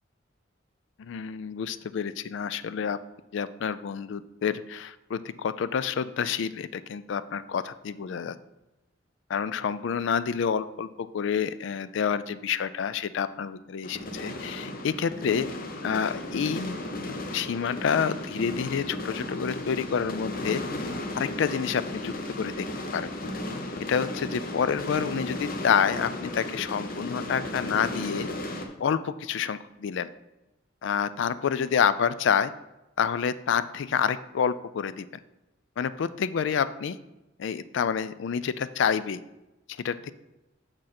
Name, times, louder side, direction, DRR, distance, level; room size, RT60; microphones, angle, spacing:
voice 1, 1.0-3.0 3.3-8.3 9.3-15.5 15.8-20.6 21.2-22.7 22.9-23.1 23.9-28.3 28.8-30.1 30.8-32.5 33.0-35.1 35.8-37.0 37.4-39.2 39.8-40.1, left 7 dB, 65° left, 15 dB, 0.4 m, -28 dB
sound 1, 13.8-28.7, left 1 dB, 50° left, 0.8 m, -35 dB
6.4 x 6.1 x 4.3 m, 0.97 s
head